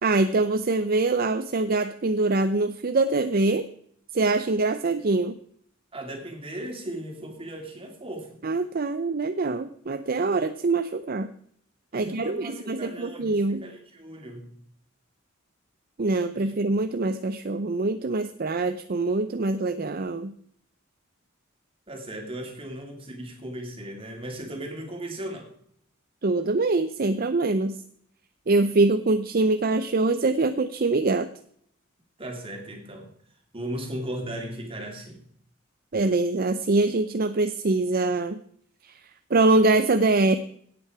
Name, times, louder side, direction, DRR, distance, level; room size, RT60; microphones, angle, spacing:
voice 1, 0.0-3.7 4.1-5.4 8.4-11.3 11.9-13.6 16.0-20.3 26.2-27.8 28.5-31.3 35.9-38.4 38.8-39.0 39.3-40.4, right 3 dB, 45° right, 10 dB, 0.6 m, -24 dB
voice 2, 5.9-8.4 11.9-14.5 21.9-25.5 32.2-33.1 33.5-35.2, right 1 dB, 25° right, 3 dB, 2.7 m, -37 dB
17.0 x 8.5 x 4.8 m, 0.65 s
head